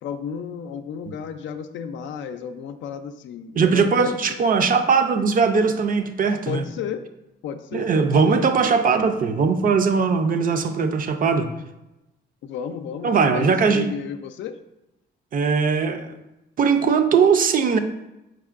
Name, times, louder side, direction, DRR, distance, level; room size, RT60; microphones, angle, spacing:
voice 1, 0.0-4.2 6.5-7.0 7.4-8.4 12.4-14.6, left 7 dB, 70° left, 9 dB, 0.4 m, -33 dB
voice 2, 3.6-6.6 7.7-11.5 13.0-13.9 15.3-16.1 16.6-17.8, right 5 dB, 45° right, 8 dB, 0.5 m, -20 dB
4.7 x 4.3 x 2.4 m, 0.93 s
cardioid pair, 90°, 20 cm